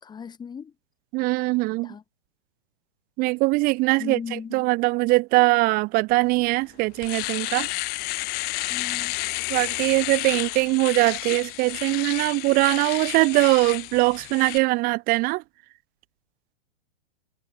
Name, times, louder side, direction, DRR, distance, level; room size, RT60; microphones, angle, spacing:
voice 1, 0.0-0.7 1.8-2.0 4.0-4.7 8.7-9.2, left 6 dB, 15° left, 5.6 m, -37 dB
voice 2, 1.1-1.9 3.2-7.7 9.5-15.4, right 23 dB, 30° right, 1.3 m, -22 dB
Domestic sounds home sounds, 6.4-6.5 6.8-14.6, left 24 dB, 30° left, 2.2 m, -31 dB
hypercardioid pair, 140°, 31 cm